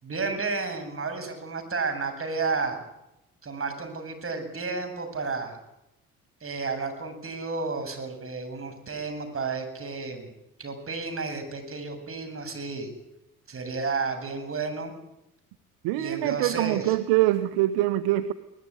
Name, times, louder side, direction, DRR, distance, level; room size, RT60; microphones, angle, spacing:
voice 1, 0.0-2.8 3.4-5.6 6.4-10.3 10.6-12.9 13.5-14.9 16.0-16.9, right 4 dB, 30° right, 7 dB, 8.0 m, -32 dB
voice 2, 15.8-18.3, right 15 dB, 60° right, 12 dB, 1.2 m, -24 dB
22.5 x 19.5 x 9.9 m, 0.88 s
figure-of-eight pair, 55°, 42 cm